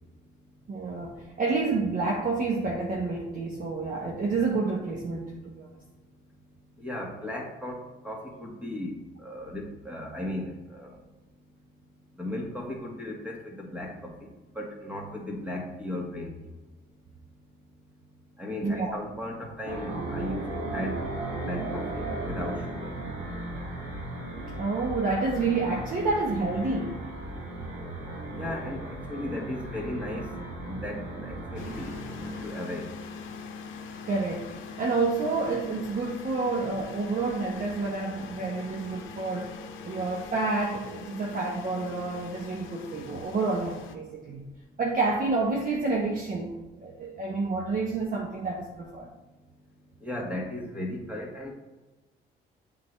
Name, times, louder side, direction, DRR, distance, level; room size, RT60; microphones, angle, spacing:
voice 1, 0.7-5.7 18.6-19.0 24.6-27.0 34.0-39.6 39.8-44.4 44.8-46.5 46.8-49.1, right 3 dB, 45° right, -2 dB, 0.9 m, -29 dB
voice 2, 6.8-11.0 12.2-14.3 14.5-16.3 18.4-21.0 21.4-22.9 28.3-30.3 30.7-32.0 32.2-32.9 50.0-51.5, left 1 dB, 5° right, -1 dB, 1.5 m, -36 dB
sound 1, 19.6-32.5, right 2 dB, 75° right, 1.5 m, -36 dB
sound 2, 31.6-44.0, left 5 dB, 80° left, 0.7 m, -42 dB
8.2 x 3.7 x 3.2 m, 1.2 s
cardioid pair, 90°, 20 cm